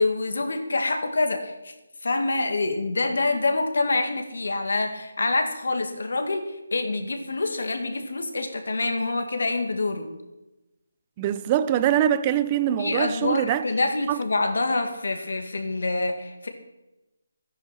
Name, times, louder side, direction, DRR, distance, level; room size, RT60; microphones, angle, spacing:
voice 1, 0.0-1.7 2.0-10.1 12.8-16.5, left 3 dB, 70° left, 2.4 m, -26 dB
voice 2, 11.2-13.6 14.1-14.2, right 11 dB, 20° right, 0.6 m, -23 dB
14.0 x 10.0 x 6.0 m
figure-of-eight pair, 160°, 0 cm